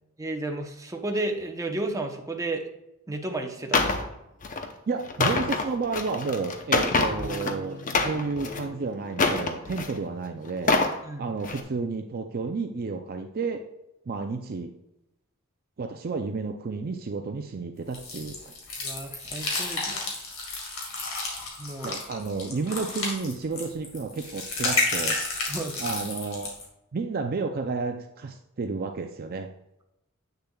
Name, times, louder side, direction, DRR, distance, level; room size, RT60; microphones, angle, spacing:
voice 1, 0.2-2.7 3.1-4.1 11.0-11.3 18.8-20.0 21.6-21.9 25.4-25.8, right 2 dB, 15° right, 3 dB, 0.8 m, -32 dB
sound 1, 3.7-4.0 4.4-4.7 5.0-7.5 7.8-8.6 9.1-10.0 10.5-11.0 11.4-11.6, left 3 dB, 40° left, 0.7 m, -25 dB
voice 2, 4.9-10.8 11.2-13.7 14.1-14.7 15.8-18.5 21.8-25.2 25.8-26.6 26.9-29.5, right 4 dB, 45° right, 5 dB, 0.5 m, -31 dB
sound 2, 6.4-11.3, left 3 dB, 5° left, 1.6 m, -45 dB
sound 3, 17.9-26.6, left 3 dB, 70° left, 2.2 m, -31 dB
8.2 x 6.7 x 2.3 m, 0.88 s
head